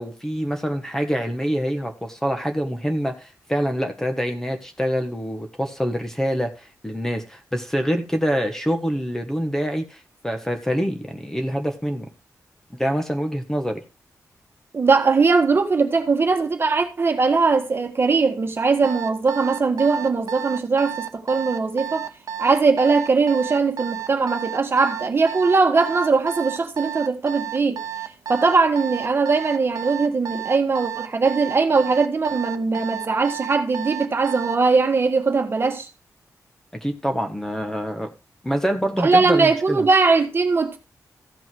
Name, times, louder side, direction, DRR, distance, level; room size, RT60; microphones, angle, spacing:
voice 1, 0.0-12.0 12.7-13.8 36.8-38.1 38.4-39.9, equal, 5° left, 1.4 m, -25 dB
voice 2, 14.7-22.1 22.4-27.8 28.3-35.9 39.0-40.8, right 4 dB, 40° right, 1.5 m, -20 dB
Alarm, 18.8-34.6, right 9 dB, 80° right, 0.9 m, -32 dB
15.0 x 5.4 x 4.6 m
wide cardioid pair, 135°, 6 cm